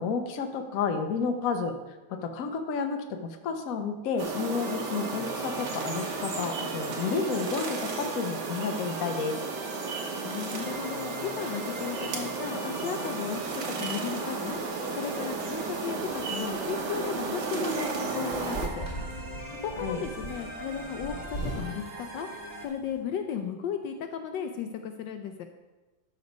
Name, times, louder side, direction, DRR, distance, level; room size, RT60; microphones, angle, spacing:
voice 1, 0.0-1.8 2.1-9.3 19.8-20.0, left 5 dB, 55° left, 5 dB, 1.1 m, -31 dB
sound 1, 4.2-18.7, right 4 dB, 65° right, 1.7 m, -34 dB
sound 2, 4.6-22.7, right 1 dB, 25° right, 0.9 m, -42 dB
voice 2, 10.2-13.4 13.8-14.6 14.9-18.8 19.5-22.3 22.6-25.4, left 7 dB, 75° left, 6 dB, 1.2 m, -35 dB
sound 3, 15.4-23.0, right 2 dB, 10° left, 3.0 m, -40 dB
12.5 x 4.2 x 5.3 m, 1.2 s
omnidirectional pair, 2.1 m